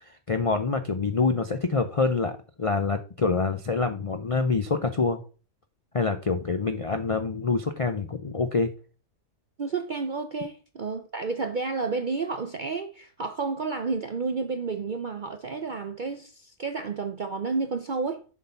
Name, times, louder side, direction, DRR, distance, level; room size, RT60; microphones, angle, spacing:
voice 1, 0.3-5.2 5.9-8.7, left 4 dB, 65° left, 0.3 m, -26 dB
voice 2, 9.6-18.3, right 4 dB, 60° right, 0.5 m, -31 dB
7.4 x 3.9 x 5.6 m
omnidirectional pair, 1.6 m